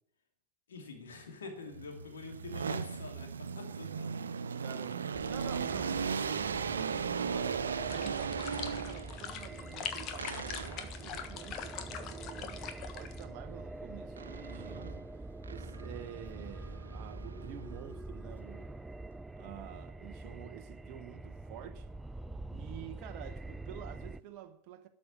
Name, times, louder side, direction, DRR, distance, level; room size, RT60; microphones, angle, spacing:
voice 1, 0.7-4.1, left 4 dB, 65° left, 2.9 m, -46 dB
sound 1, 1.7-9.3 10.2-11.0 14.2-15.0 15.4-17.8, right 6 dB, 70° right, 0.6 m, -37 dB
voice 2, 4.6-15.1 15.5-18.7 19.4-21.9 22.5-24.9, right 11 dB, 40° right, 1.1 m, -49 dB
sound 2, 5.1-24.2, right 2 dB, 10° right, 0.4 m, -45 dB
sound 3, 7.9-13.2, left 8 dB, 35° left, 1.3 m, -43 dB
12.5 x 6.5 x 8.7 m
figure-of-eight pair, 90°, 0 cm